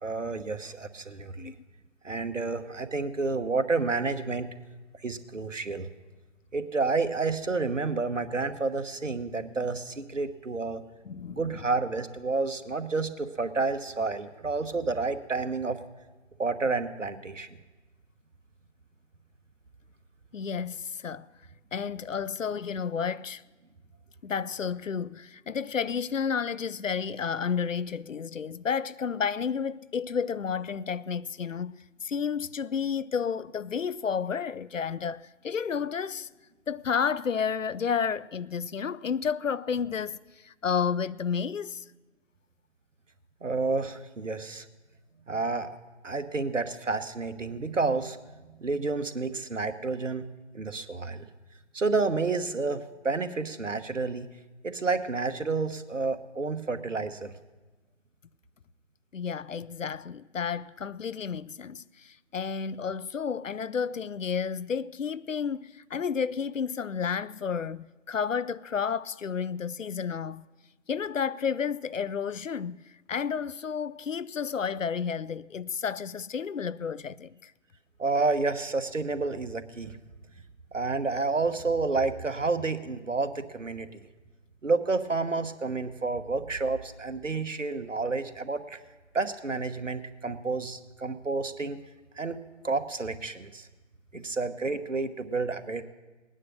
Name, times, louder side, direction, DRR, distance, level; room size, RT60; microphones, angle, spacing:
voice 1, 0.0-1.5 2.0-4.5 5.0-5.9 6.5-10.8 11.3-15.8 16.4-17.5 43.4-44.6 45.3-45.8 46.0-48.2 48.6-50.3 50.5-51.3 51.7-54.3 54.6-57.3 78.0-80.0 80.7-84.0 84.6-88.8 89.1-91.8 92.2-93.7 94.1-95.8, right 3 dB, 75° right, 1.2 m, -30 dB
voice 2, 11.0-11.7 20.3-21.3 21.7-23.4 24.2-36.3 36.7-41.8 59.1-70.5 70.9-72.8 73.1-77.5 94.1-94.2, left 6 dB, 80° left, 0.6 m, -31 dB
19.0 x 9.9 x 6.4 m
figure-of-eight pair, 155°, 38 cm